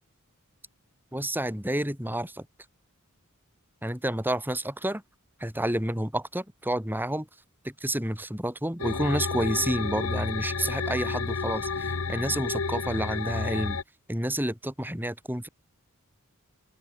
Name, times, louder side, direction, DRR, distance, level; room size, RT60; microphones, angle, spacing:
voice 1, 1.1-2.5 3.8-5.0 5.4-7.3 7.6-13.8 14.1-15.5, right 1 dB, 10° right, 6.5 m, -29 dB
sound 1, 8.8-13.8, left 4 dB, 75° left, 1.0 m, -31 dB
open air
head